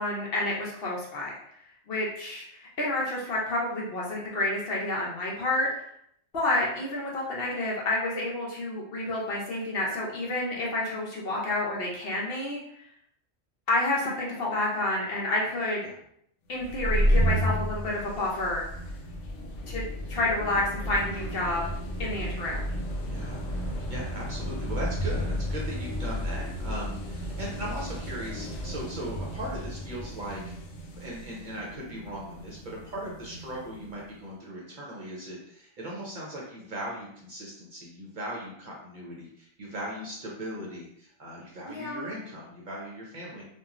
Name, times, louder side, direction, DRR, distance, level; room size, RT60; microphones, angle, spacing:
voice 1, 0.0-1.3 1.9-5.9 6.3-12.6 13.7-15.8 16.5-18.6 19.7-19.8 20.1-21.6 22.0-22.6 41.7-42.1, left 2 dB, 60° left, -3 dB, 0.8 m, -29 dB
sound 1, 16.6-34.0, equal, 85° left, 0.9 m, -32 dB
voice 2, 23.0-23.4 23.9-43.4, right 1 dB, 50° right, -4 dB, 0.7 m, -38 dB
2.9 x 2.3 x 2.4 m, 0.71 s
omnidirectional pair, 1.2 m